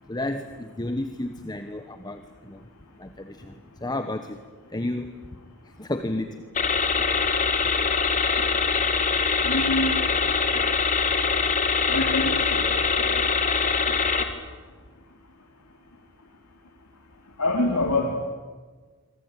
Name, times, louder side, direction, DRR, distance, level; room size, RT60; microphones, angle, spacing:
voice 1, 0.1-2.7 3.0-4.4 4.7-6.4 7.0-7.1, left 1 dB, 20° left, 8 dB, 1.2 m, -32 dB
sound 1, 6.6-14.2, left 5 dB, 35° left, 2.3 m, -23 dB
voice 2, 9.4-10.0 11.9-13.3 17.4-18.2, left 2 dB, 85° left, 1 dB, 3.3 m, -26 dB
26.5 x 24.5 x 9.2 m, 1.5 s
head